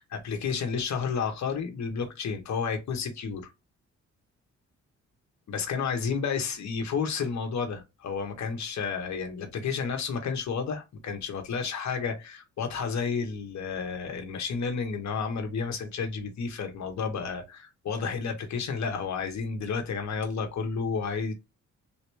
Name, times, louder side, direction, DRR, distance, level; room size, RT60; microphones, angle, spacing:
voice 1, 0.0-3.5 5.5-21.3, left 5 dB, 65° left, 1.3 m, -31 dB
3.6 x 2.9 x 3.4 m
cardioid pair, 70°, 30 cm